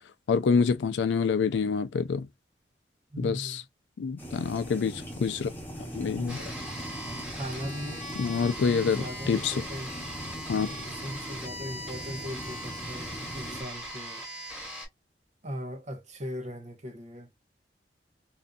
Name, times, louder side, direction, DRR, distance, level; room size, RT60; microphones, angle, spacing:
voice 1, 0.3-2.3 3.2-3.6 4.0-5.5 5.9-6.5 8.2-9.6 10.5-10.7, left 5 dB, 80° left, 0.4 m, -27 dB
voice 2, 3.1-3.6 7.3-9.9 10.6-14.3 15.4-17.3, equal, 40° right, 0.7 m, -39 dB
sound 1, 4.2-13.6, equal, 10° left, 0.9 m, -40 dB
sound 2, 6.3-14.9, equal, 10° right, 1.4 m, -40 dB
2.6 x 2.4 x 2.2 m
head